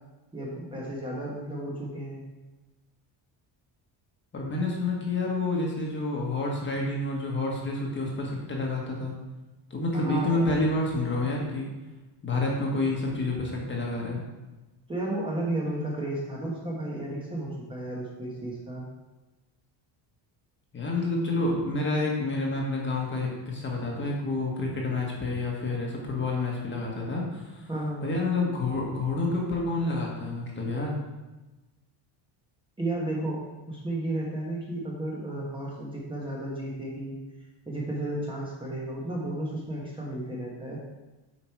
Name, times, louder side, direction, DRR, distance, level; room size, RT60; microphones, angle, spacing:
voice 1, 0.3-2.2 9.9-10.7 14.9-18.8 27.7-28.1 32.8-33.4 33.7-37.2 37.6-40.8, right 1 dB, 10° right, -4 dB, 1.2 m, -33 dB
voice 2, 4.3-9.1 9.7-11.7 12.2-14.2 20.7-27.7 28.0-31.0, left 2 dB, 25° left, -2 dB, 1.5 m, -29 dB
8.4 x 5.1 x 4.7 m, 1.1 s
cardioid pair, 170°, 46 cm